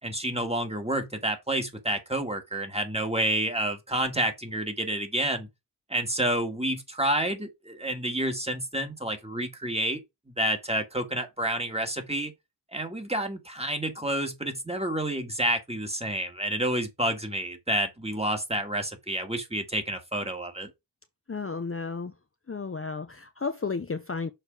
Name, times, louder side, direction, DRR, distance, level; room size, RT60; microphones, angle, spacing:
voice 1, 0.0-5.5 5.9-10.0 10.4-12.3 12.7-20.7, right 1 dB, 15° right, 2.2 m, -29 dB
voice 2, 21.3-22.1 22.5-24.3, left 4 dB, 35° left, 0.7 m, -33 dB
6.7 x 4.4 x 4.9 m
cardioid pair, 50°, 41 cm